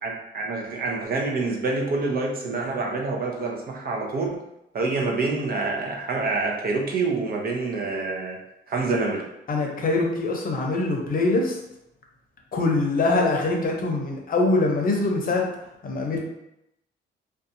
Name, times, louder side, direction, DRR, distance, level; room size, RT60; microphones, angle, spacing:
voice 1, 0.0-4.4 4.7-8.4 8.7-9.2, right 3 dB, 50° right, 0 dB, 0.6 m, -27 dB
voice 2, 9.5-11.6 12.5-15.5 15.8-16.2, left 2 dB, 45° left, 0 dB, 0.7 m, -23 dB
2.6 x 2.2 x 2.6 m, 0.85 s
cardioid pair, 90°, 20 cm